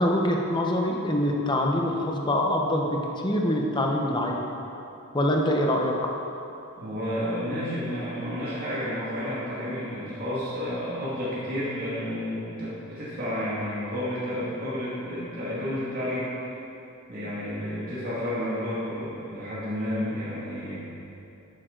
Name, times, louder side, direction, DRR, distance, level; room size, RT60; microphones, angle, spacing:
voice 1, 0.0-4.5 5.1-6.1, left 1 dB, 20° left, 0 dB, 1.0 m, -25 dB
voice 2, 6.8-16.3 17.1-20.8, equal, 40° right, -10 dB, 2.5 m, -31 dB
11.0 x 9.0 x 4.0 m, 2.9 s
head